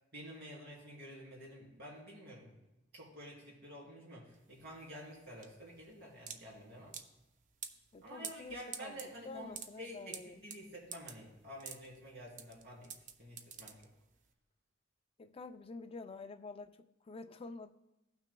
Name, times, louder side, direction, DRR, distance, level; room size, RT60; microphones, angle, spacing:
voice 1, 0.1-2.5 2.9-7.0 8.0-12.9 13.2-13.8, equal, 60° right, -4 dB, 3.1 m, -50 dB
sound 1, 4.3-14.3, right 7 dB, 40° right, 0.5 m, -49 dB
voice 2, 7.9-9.0 9.2-10.4 15.2-17.7, left 3 dB, 30° left, 8 dB, 0.4 m, -48 dB
16.5 x 6.1 x 2.2 m, 0.95 s
head